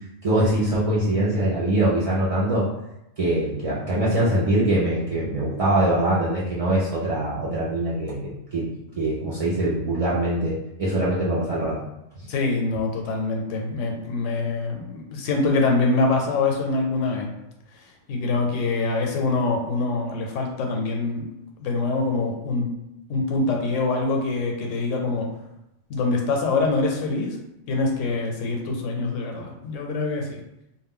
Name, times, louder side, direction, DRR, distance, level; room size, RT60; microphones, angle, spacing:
voice 1, 0.2-2.7 3.2-8.2 8.5-8.7 9.0-11.8 12.2-12.3, right 1 dB, 65° right, -8 dB, 0.3 m, -23 dB
voice 2, 12.3-17.3 18.1-21.2 21.6-22.7 23.1-25.3 25.9-27.4 27.7-30.4, left 3 dB, 85° left, 2 dB, 0.9 m, -24 dB
2.2 x 2.1 x 3.5 m, 0.87 s
omnidirectional pair, 1.3 m